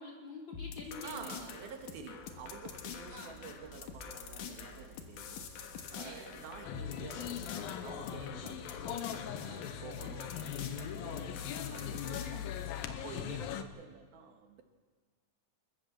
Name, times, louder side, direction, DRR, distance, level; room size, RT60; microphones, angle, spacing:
voice 1, 0.0-1.6 3.1-3.4 6.0-6.4 8.3-8.5 13.1-13.3, left 2 dB, 30° left, -2 dB, 4.4 m, -48 dB
sound 1, 0.5-12.9, left 7 dB, 65° left, 2.8 m, -46 dB
sound 2, 0.7-8.5, right 2 dB, 15° right, 5.9 m, -57 dB
voice 2, 1.0-9.1 9.4-14.6, right 6 dB, 80° right, 5 dB, 3.5 m, -50 dB
sound 3, 6.6-13.6, left 9 dB, 85° left, 2.8 m, -40 dB
29.0 x 13.5 x 7.3 m, 1.5 s
omnidirectional pair, 4.2 m